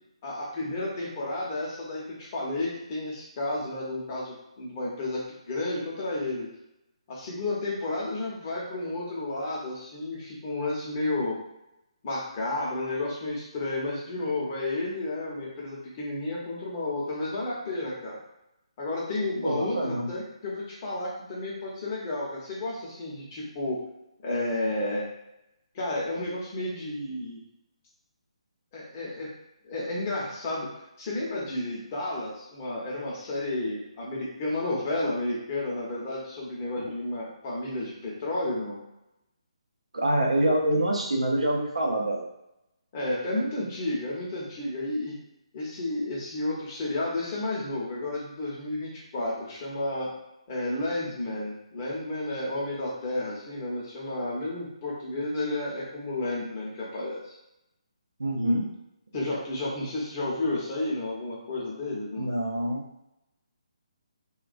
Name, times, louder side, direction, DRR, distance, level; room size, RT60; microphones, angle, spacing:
voice 1, 0.2-6.5 7.1-11.4 12.0-18.2 18.8-23.8 24.2-25.1 25.7-27.4 28.7-29.3 29.6-30.7 31.0-38.8 42.9-45.2 45.5-50.1 50.5-57.3 58.4-58.7 59.1-62.3, left 2 dB, 30° left, -4 dB, 0.7 m, -32 dB
voice 2, 19.4-20.1 39.9-42.3 58.2-58.7 59.2-59.4 62.2-63.1, right 1 dB, 75° right, 0 dB, 0.5 m, -26 dB
2.3 x 2.2 x 2.5 m, 0.85 s
figure-of-eight pair, 140°, 3 cm